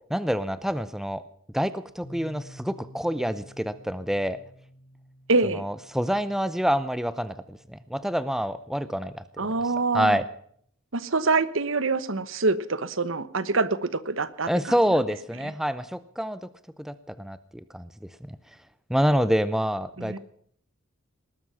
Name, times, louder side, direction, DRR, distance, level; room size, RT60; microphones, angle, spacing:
voice 1, 0.1-1.2 1.5-4.4 5.6-9.5 9.9-10.3 14.5-16.4 16.8-17.4 17.7-17.9 18.3-18.4 18.9-20.2, equal, ahead, 14 dB, 0.6 m, -27 dB
sound 1, 2.0-9.7, equal, 35° left, 4.5 m, -51 dB
voice 2, 5.3-5.6 9.4-10.2 10.9-14.5 20.0-20.2, right 3 dB, 70° right, 16 dB, 1.1 m, -25 dB
19.5 x 12.5 x 5.7 m, 0.63 s
head